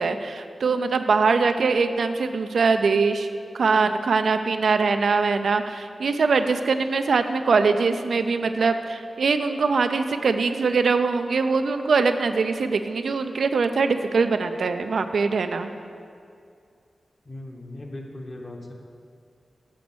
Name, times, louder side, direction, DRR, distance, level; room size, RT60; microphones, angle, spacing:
voice 1, 0.0-3.3 3.5-15.7, right 4 dB, 80° right, 8 dB, 0.4 m, -22 dB
voice 2, 17.2-18.7, left 1 dB, 35° left, 1 dB, 1.0 m, -38 dB
7.6 x 5.2 x 6.9 m, 2.4 s
wide cardioid pair, 110°, 0 cm